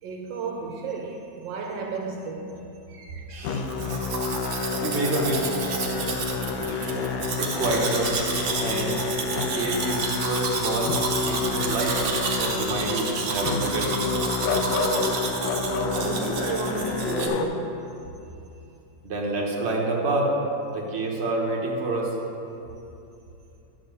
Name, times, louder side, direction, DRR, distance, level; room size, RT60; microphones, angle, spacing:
voice 1, 0.0-2.7 15.5-17.8 20.6-20.8, right 4 dB, 75° right, 1.4 m, -32 dB
voice 2, 2.9-3.7 4.8-5.5 5.8-6.1 6.4-7.1 7.4-8.1 8.6-9.0 9.3-11.0 11.3-12.0 12.4-14.0 19.0-20.3 20.7-22.1, right 2 dB, 40° right, 1.3 m, -28 dB
Musical instrument, 3.4-17.5, left 4 dB, 75° left, 1.1 m, -29 dB
Domestic sounds home sounds, 3.7-17.3, right 4 dB, 60° right, 1.2 m, -31 dB
10.0 x 3.9 x 6.7 m
omnidirectional pair, 2.1 m